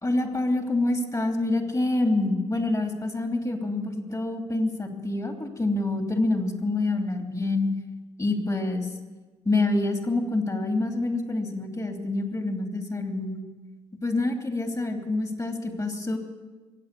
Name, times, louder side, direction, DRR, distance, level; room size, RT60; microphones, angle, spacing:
voice 1, 0.0-7.7 8.2-8.9 9.4-13.4 14.0-16.2, left 2 dB, 25° left, 4 dB, 3.1 m, -26 dB
23.0 x 8.6 x 6.9 m, 1.3 s
hypercardioid pair, 50°, 13 cm